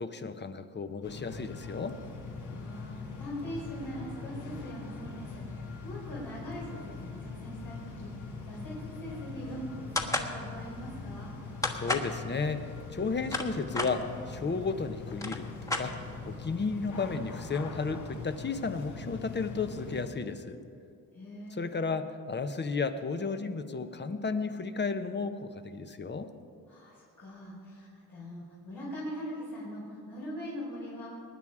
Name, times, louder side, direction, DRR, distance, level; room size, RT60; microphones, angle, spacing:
voice 1, 0.0-2.0 11.7-16.0 16.2-20.6 21.5-26.3, left 4 dB, 30° left, 10 dB, 0.9 m, -33 dB
sound 1, 1.0-20.1, left 4 dB, 60° left, 1.8 m, -42 dB
voice 2, 2.4-11.3 21.1-21.7 26.7-31.1, equal, 75° left, -8 dB, 4.2 m, -42 dB
sound 2, 10.0-10.3 11.6-12.1 13.0-13.9 14.8-14.9 15.1-16.3, left 2 dB, 10° left, 1.3 m, -31 dB
19.5 x 9.5 x 4.9 m, 2.5 s
cardioid pair, 80°, 35 cm